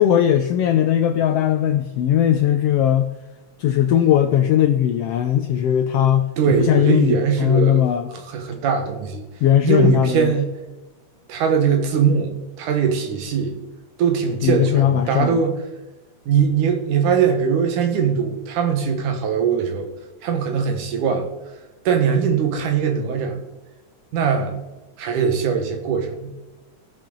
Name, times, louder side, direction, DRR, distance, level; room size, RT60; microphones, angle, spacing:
voice 1, 0.0-3.1 3.6-8.1 9.4-10.3 14.4-15.4, left 10 dB, 85° left, 8 dB, 1.4 m, -18 dB
voice 2, 6.4-7.8 8.1-9.2 9.6-10.5 11.3-13.6 14.0-15.6 16.3-19.9 20.2-21.3 21.9-23.4 24.1-24.6 25.0-26.3, right 7 dB, 90° right, 5 dB, 2.9 m, -21 dB
17.5 x 7.4 x 3.9 m, 1.1 s
omnidirectional pair, 3.4 m